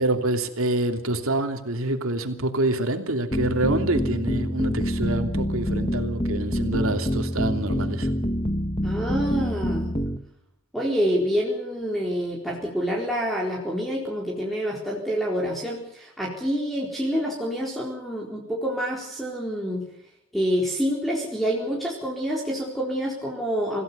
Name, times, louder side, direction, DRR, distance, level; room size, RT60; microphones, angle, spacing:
voice 1, 0.0-8.1, right 2 dB, 75° right, 6 dB, 3.0 m, -26 dB
sound 1, 3.3-10.2, equal, 25° left, 1.7 m, -26 dB
voice 2, 8.8-9.9 10.7-19.8 20.3-23.8, equal, ahead, -2 dB, 4.1 m, -27 dB
27.0 x 16.5 x 6.9 m, 0.79 s
head